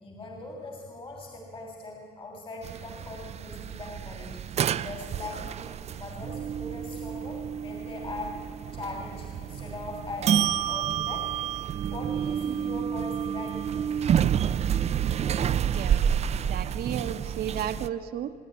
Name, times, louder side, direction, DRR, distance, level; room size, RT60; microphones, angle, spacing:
voice 1, 0.0-4.4 4.7-11.3 11.9-14.0, left 2 dB, 30° left, 3 dB, 3.0 m, -41 dB
sound 1, 2.6-17.9, right 9 dB, 40° right, 0.5 m, -29 dB
voice 2, 15.7-18.3, right 10 dB, 65° right, 7 dB, 1.1 m, -34 dB
26.0 x 11.0 x 9.5 m, 2.1 s
cardioid pair, 110°, 17 cm